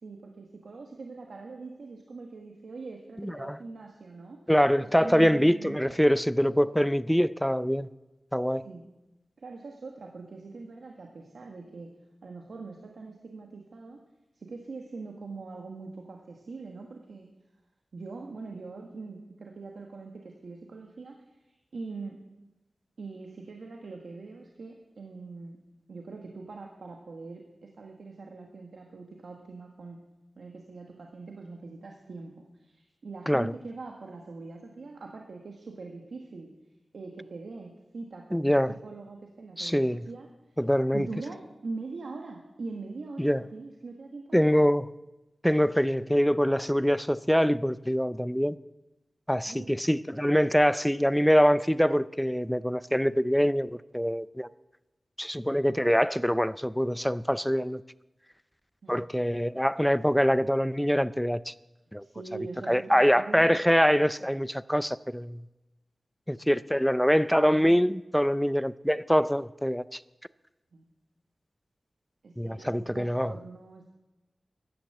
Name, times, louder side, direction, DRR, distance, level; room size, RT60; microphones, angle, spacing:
voice 1, 0.0-4.4 5.0-5.8 8.6-8.8 9.4-11.9 12.2-14.0 14.3-17.3 17.9-22.2 23.0-25.6 25.9-30.0 30.3-36.5 36.9-38.6 38.8-40.6 40.9-44.7 49.5-49.8 58.8-59.1 62.0-63.6 70.7-70.8 72.2-73.9, right 3 dB, 80° right, 1.5 m, -42 dB
voice 2, 3.2-3.6 4.5-7.9 8.3-8.6 33.3-33.5 38.3-38.7 39.6-40.0 40.6-41.1 43.2-43.4 44.3-44.9 45.4-48.6 49.3-54.5 55.2-57.8 58.9-61.5 61.9-62.0 62.7-65.4 66.3-70.0 72.4-73.3, equal, 5° left, 0.4 m, -24 dB
14.5 x 10.5 x 7.8 m
wide cardioid pair, 80°, 0 cm